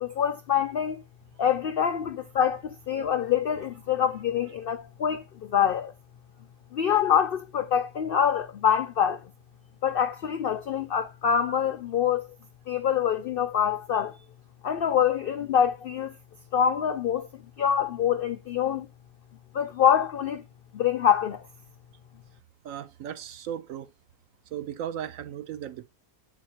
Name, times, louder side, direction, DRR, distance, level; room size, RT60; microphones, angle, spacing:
voice 1, 0.0-1.0 1.4-5.9 6.7-9.2 9.8-12.3 12.7-14.2 14.6-16.1 16.5-17.3 17.6-18.9 19.5-20.4 20.7-21.4, left 8 dB, 85° left, 0.5 m, -25 dB
voice 2, 22.6-23.9 24.5-25.9, right 10 dB, 70° right, 1.0 m, -36 dB
7.5 x 4.2 x 4.3 m
omnidirectional pair, 1.5 m